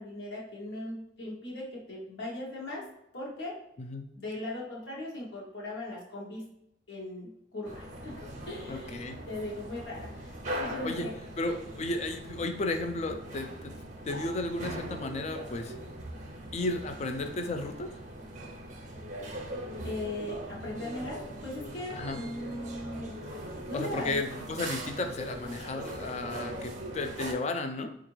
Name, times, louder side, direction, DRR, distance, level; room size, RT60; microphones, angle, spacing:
voice 1, 0.0-2.8 3.1-3.6 4.1-6.5 6.9-11.1 19.8-24.3, left 1 dB, 70° left, -5 dB, 0.9 m, -39 dB
sound 1, 7.6-27.3, right 1 dB, 40° right, 0.6 m, -41 dB
voice 2, 8.7-9.2 10.8-11.1 11.4-13.7 14.1-15.7 16.5-17.9 21.9-22.2 23.7-27.9, left 2 dB, 35° left, 5 dB, 0.4 m, -33 dB
4.4 x 2.4 x 3.0 m, 0.78 s
head